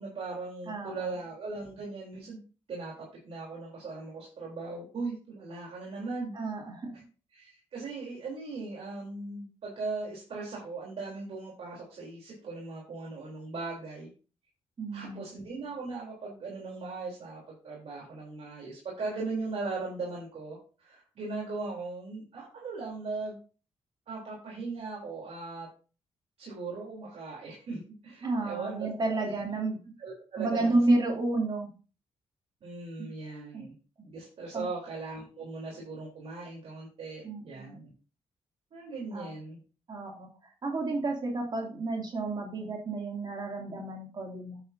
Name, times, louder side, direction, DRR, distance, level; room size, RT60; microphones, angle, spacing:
voice 1, 0.0-2.4 2.7-6.4 7.3-14.1 14.9-23.4 24.1-25.7 26.4-29.5 30.0-30.8 32.6-33.7 34.0-37.9 38.7-39.6, right 3 dB, 65° right, -4 dB, 3.6 m, -39 dB
voice 2, 0.7-1.1 6.3-6.9 14.8-15.2 28.2-29.8 30.4-31.7 33.0-33.1 33.5-33.6 34.5-34.7 37.2-37.8 39.1-39.3 39.9-44.6, right 2 dB, 40° right, 0 dB, 2.7 m, -31 dB
9.2 x 8.3 x 2.7 m, 0.35 s
cardioid pair, 110°, 11 cm